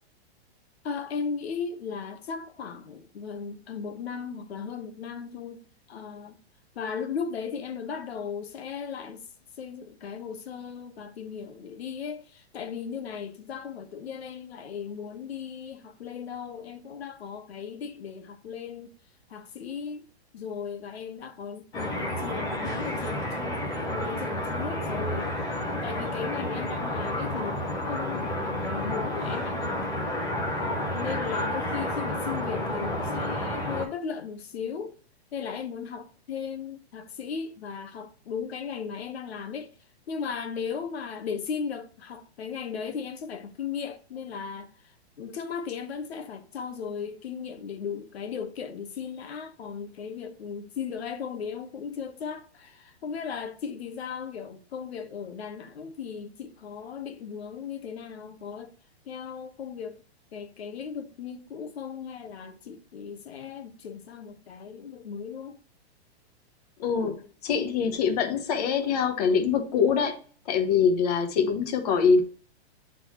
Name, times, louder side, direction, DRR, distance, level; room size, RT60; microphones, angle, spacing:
voice 1, 0.8-5.6 5.9-6.4 6.7-9.3 9.6-18.9 19.3-20.0 20.3-23.6 23.9-27.6 27.9-29.8 30.9-34.9 35.3-39.7 40.1-44.7 45.2-58.7 59.1-60.0 60.3-65.6 67.0-67.2, left 6 dB, 70° left, 1.2 m, -36 dB
sound 1, 21.7-33.8, left 1 dB, 10° left, 0.7 m, -30 dB
voice 2, 66.8-67.2 67.4-70.2 70.4-72.2, left 6 dB, 35° left, 1.1 m, -24 dB
8.9 x 3.9 x 3.0 m
hypercardioid pair, 170°, 33 cm